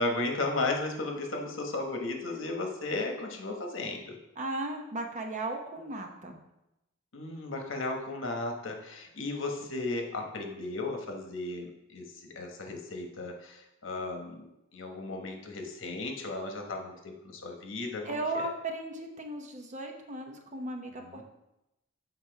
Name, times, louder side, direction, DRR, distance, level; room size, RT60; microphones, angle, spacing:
voice 1, 0.0-4.2 7.1-18.4 21.0-21.2, left 2 dB, 65° left, 2 dB, 1.1 m, -35 dB
voice 2, 4.4-6.4 18.0-21.2, right 2 dB, 35° right, 3 dB, 0.8 m, -36 dB
7.4 x 4.2 x 4.5 m, 0.91 s
head